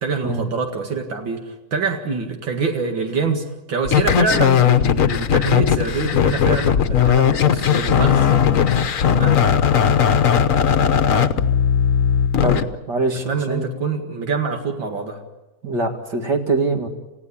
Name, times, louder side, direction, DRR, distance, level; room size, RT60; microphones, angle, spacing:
voice 1, 0.0-8.4 9.1-9.4 13.3-15.2, right 5 dB, 80° right, 3 dB, 2.8 m, -25 dB
sound 1, 3.8-12.6, left 8 dB, 50° left, 1.2 m, -17 dB
voice 2, 12.4-13.7 15.6-16.9, right 3 dB, 60° right, 3 dB, 2.8 m, -23 dB
29.5 x 16.0 x 8.7 m, 1.0 s
omnidirectional pair, 2.1 m